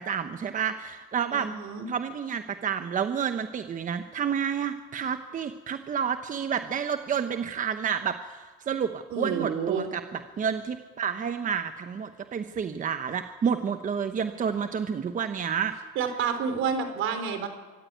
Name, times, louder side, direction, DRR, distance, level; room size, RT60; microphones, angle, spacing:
voice 1, 0.0-1.5 1.9-15.8, right 7 dB, 40° right, 9 dB, 1.0 m, -30 dB
voice 2, 1.3-1.9 9.1-9.9 16.0-17.5, right 6 dB, 75° right, 8 dB, 3.5 m, -29 dB
24.5 x 14.0 x 9.4 m, 1.3 s
cardioid pair, 120°, 21 cm